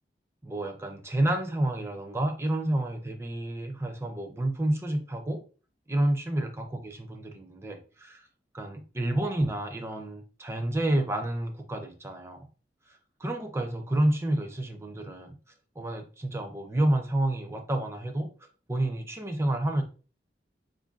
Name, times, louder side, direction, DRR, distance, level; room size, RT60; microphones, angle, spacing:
voice 1, 0.4-5.4 5.9-8.3 8.5-12.5 12.9-15.3 15.8-19.8, right 1 dB, 15° right, 0.5 m, -29 dB
4.2 x 2.5 x 2.4 m
head